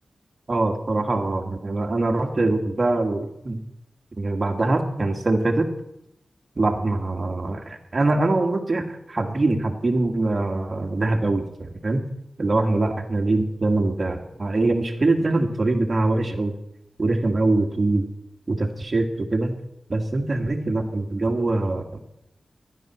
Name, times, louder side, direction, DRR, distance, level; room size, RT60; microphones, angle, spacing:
voice 1, 0.5-3.6 4.2-5.7 6.6-12.0 12.4-16.5 17.0-18.1 18.5-19.5 19.9-22.0, right 2 dB, 35° right, 3 dB, 1.9 m, -23 dB
14.5 x 11.0 x 6.1 m, 0.81 s
wide cardioid pair, 150°, 0 cm